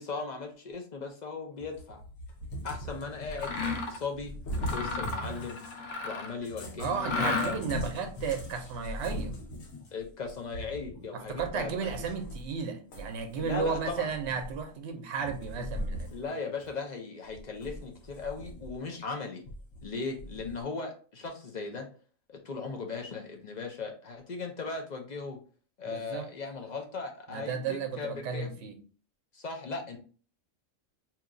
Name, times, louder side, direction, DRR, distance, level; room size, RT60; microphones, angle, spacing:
voice 1, 0.0-2.0 2.6-3.6 3.9-5.6 6.0-7.5 9.9-11.9 13.4-14.1 16.1-19.4 19.8-21.9 22.3-25.4 25.8-28.5 29.3-30.0, left 4 dB, 50° left, 2 dB, 0.5 m, -38 dB
Cat, 1.6-5.9 6.4-12.6 12.9-14.8 15.2-16.3 16.6-16.7 17.3-18.9 19.5-20.6, equal, 90° left, 1.1 m, -40 dB
Mechanisms, 3.3-4.0 4.5-6.4 7.0-7.8, left 3 dB, 70° left, 0.9 m, -33 dB
voice 2, 6.8-9.3 11.1-16.4 25.9-26.3 27.3-28.7, right 6 dB, 60° right, 5 dB, 0.9 m, -34 dB
2.9 x 2.3 x 3.7 m, 0.39 s
omnidirectional pair, 1.4 m